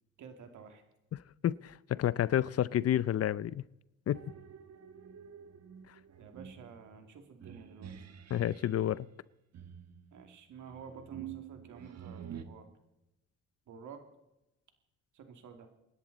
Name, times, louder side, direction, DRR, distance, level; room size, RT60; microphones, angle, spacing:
voice 1, 0.2-0.8 6.2-7.9 10.1-12.7 13.7-14.0 15.1-15.7, right 6 dB, 75° right, 6 dB, 2.7 m, -51 dB
voice 2, 1.1-3.6 4.1-4.2 8.3-9.1, left 11 dB, 55° left, 20 dB, 0.6 m, -30 dB
sound 1, 4.1-8.9 9.5-12.4, right 9 dB, 60° right, 1.5 m, -48 dB
26.5 x 10.5 x 4.2 m, 0.94 s
cardioid pair, 90°, 30 cm